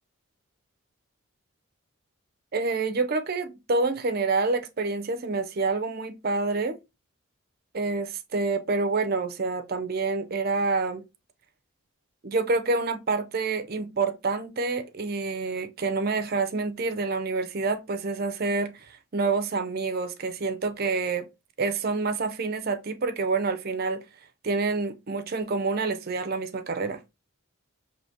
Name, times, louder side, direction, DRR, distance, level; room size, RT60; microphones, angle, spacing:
voice 1, 2.5-6.8 7.7-11.0 12.2-21.3 21.6-24.0 24.4-27.0, right 3 dB, 45° right, 0.5 m, -27 dB
4.9 x 2.8 x 2.6 m
head